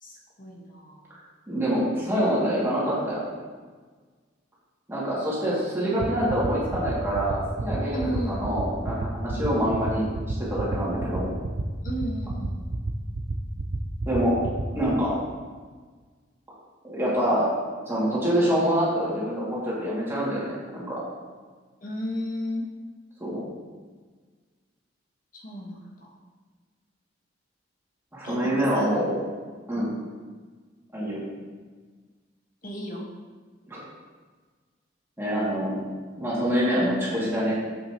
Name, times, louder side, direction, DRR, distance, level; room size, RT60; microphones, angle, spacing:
voice 1, 0.0-1.0 5.8-6.0 7.9-8.4 9.3-9.5 11.8-12.6 21.8-22.6 25.3-26.1 28.2-29.0 29.7-29.9 32.6-33.0, equal, 45° left, -2 dB, 1.6 m, -34 dB
voice 2, 1.5-3.2 4.9-11.3 14.1-14.4 14.7-15.1 16.8-17.5 17.9-21.0 23.2-23.4 28.1-29.1 29.7-29.9 30.9-31.2 33.7-33.8 35.2-35.8 36.2-37.6, equal, 15° right, -8 dB, 2.4 m, -26 dB
sound 1, 6.0-14.9, right 3 dB, 65° right, 0.7 m, -29 dB
8.7 x 7.9 x 3.1 m, 1.5 s
head